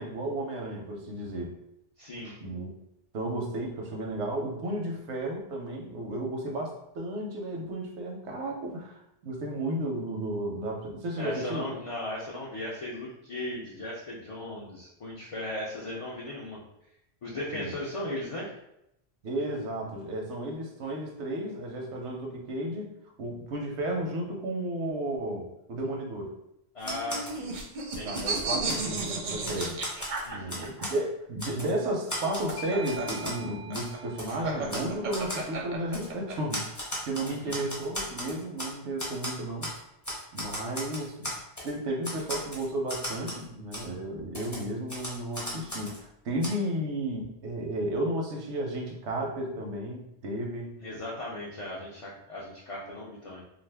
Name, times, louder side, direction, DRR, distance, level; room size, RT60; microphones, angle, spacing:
voice 1, 0.0-1.5 2.4-2.7 3.1-11.7 17.5-17.7 19.2-22.9 23.2-26.3 28.0-29.8 30.3-36.7 37.1-39.7 40.3-41.3 41.6-50.7, right 1 dB, 85° right, 1 dB, 1.0 m, -33 dB
voice 2, 2.0-2.4 11.2-16.6 17.2-18.5 26.7-27.5 27.9-28.3 30.2-30.7 37.2-37.6 50.8-53.4, left 1 dB, 50° left, -5 dB, 0.4 m, -37 dB
Typewriter, 26.8-27.4 27.8-29.1 29.4-31.0 31.4-31.7 32.1-33.4 33.7-33.9 34.2-34.3 34.7-34.9 35.1-35.4 35.9-36.1 36.5-38.7 39.0-39.8 40.0-41.7 42.0-43.4 43.7-43.8 44.3-46.0 46.4-46.5, equal, 20° left, 0.7 m, -36 dB
sound 1, 26.8-30.9 32.1-36.3, right 4 dB, 55° right, 0.6 m, -33 dB
Bell / Doorbell, 32.1-37.3, right 3 dB, 90° left, 0.9 m, -46 dB
2.5 x 2.5 x 3.3 m, 0.82 s
omnidirectional pair, 1.1 m